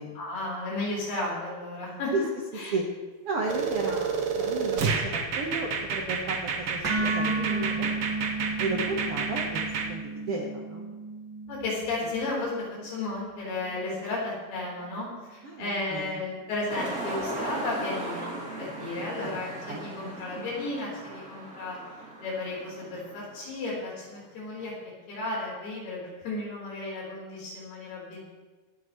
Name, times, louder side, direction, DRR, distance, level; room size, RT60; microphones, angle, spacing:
voice 1, 0.2-2.1 2.5-2.7 7.2-7.8 11.5-18.3 18.6-21.8 22.2-24.7 25.1-28.2, left 2 dB, 85° left, -5 dB, 6.1 m, -34 dB
voice 2, 3.2-7.9 8.6-10.9 15.4-16.2 19.0-19.3 19.7-20.5, right 3 dB, 65° right, -1 dB, 1.4 m, -34 dB
sound 1, 3.5-9.9, right 5 dB, 85° right, 1.2 m, -29 dB
sound 2, 6.8-14.9, right 3 dB, 50° right, 1.7 m, -34 dB
sound 3, 16.7-23.8 24.4-24.6, right 1 dB, 25° right, 2.5 m, -38 dB
25.5 x 8.9 x 3.2 m, 1.3 s
omnidirectional pair, 4.4 m